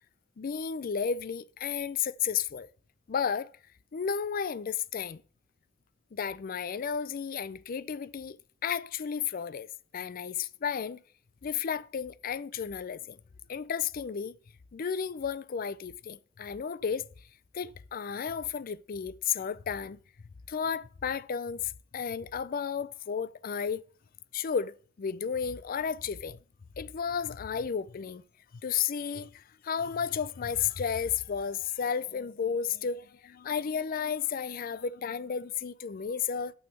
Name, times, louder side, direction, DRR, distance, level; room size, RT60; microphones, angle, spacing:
voice 1, 0.4-2.7 3.1-3.5 3.9-5.2 6.1-8.4 8.6-11.0 11.4-13.2 13.5-14.4 14.7-17.1 17.5-20.0 20.5-23.8 24.3-26.4 26.8-28.2 28.6-36.5, left 7 dB, 45° left, 0.4 m, -33 dB
6.4 x 6.1 x 7.1 m
head